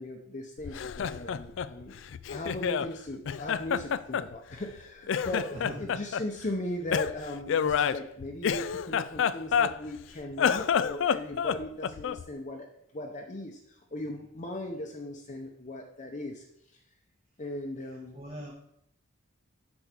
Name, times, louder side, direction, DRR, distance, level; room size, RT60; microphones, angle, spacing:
voice 1, 0.0-2.0 2.3-16.4 17.4-18.2, left 1 dB, 35° left, 2 dB, 0.8 m, -38 dB
Laughter, 0.6-2.9 3.3-4.8 5.1-6.3 6.9-10.0 10.3-12.3, left 7 dB, 65° left, 0.3 m, -29 dB
voice 2, 5.5-5.9 18.1-18.5, equal, 30° right, -3 dB, 1.3 m, -40 dB
8.0 x 5.4 x 6.0 m, 0.75 s
head